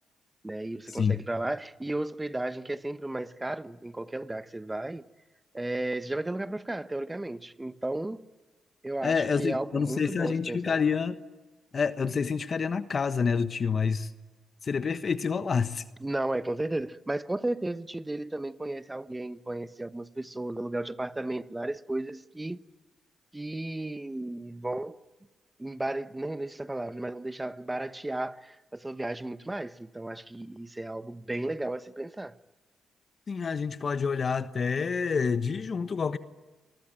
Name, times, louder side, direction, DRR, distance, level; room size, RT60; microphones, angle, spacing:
voice 1, 0.4-5.0 5.5-8.3 8.8-10.7 16.0-22.6 23.3-25.0 25.6-32.4, right 2 dB, 15° right, 1.1 m, -34 dB
voice 2, 9.0-11.2 11.7-14.1 14.6-15.8 33.3-36.2, left 5 dB, 45° left, 1.2 m, -28 dB
28.5 x 22.5 x 9.0 m
cardioid pair, 75°, 0 cm